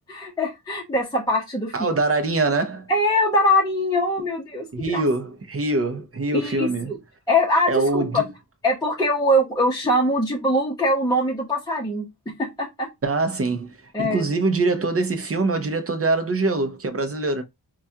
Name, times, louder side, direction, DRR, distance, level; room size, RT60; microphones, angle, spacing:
voice 1, 0.1-2.0 2.9-5.0 6.3-7.0 7.3-8.2 8.6-12.1 12.4-12.9 13.9-14.2, left 1 dB, 10° left, 0.7 m, -22 dB
voice 2, 1.7-2.9 4.7-6.9 7.7-8.3 13.0-17.4, right 3 dB, 35° right, 0.7 m, -24 dB
4.7 x 2.3 x 2.7 m
wide cardioid pair, 125°, 40 cm